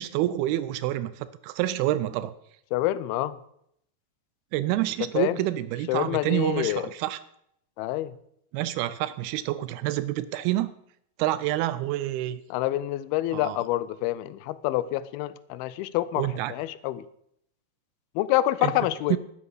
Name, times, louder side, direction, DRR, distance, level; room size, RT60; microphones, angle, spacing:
voice 1, 0.0-2.3 4.5-7.2 8.5-10.7 11.2-12.4 13.3-13.6 16.2-16.5 18.6-18.7 19.1-19.2, right 14 dB, 85° right, 15 dB, 2.5 m, -27 dB
voice 2, 2.7-3.4 5.1-5.4 5.9-6.9 7.8-8.2 12.5-17.1 18.2-19.2, left 15 dB, 85° left, 16 dB, 2.5 m, -27 dB
12.5 x 9.5 x 5.0 m, 0.74 s
omnidirectional pair, 4.4 m